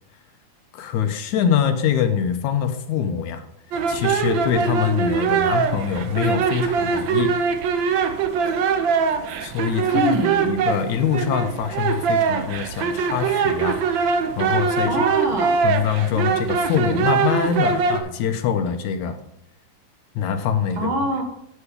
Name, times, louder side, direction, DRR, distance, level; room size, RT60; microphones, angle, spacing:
voice 1, 0.7-3.5 3.9-7.4 9.4-15.0 15.6-19.2 20.2-21.0, left 7 dB, 85° left, 8 dB, 2.4 m, -24 dB
sound 1, 3.7-18.0, right 6 dB, 75° right, 1.1 m, -22 dB
voice 2, 9.9-10.5 14.9-15.6 20.8-21.2, right 1 dB, 55° right, 3 dB, 1.8 m, -24 dB
13.0 x 6.1 x 5.1 m, 0.76 s
omnidirectional pair, 3.3 m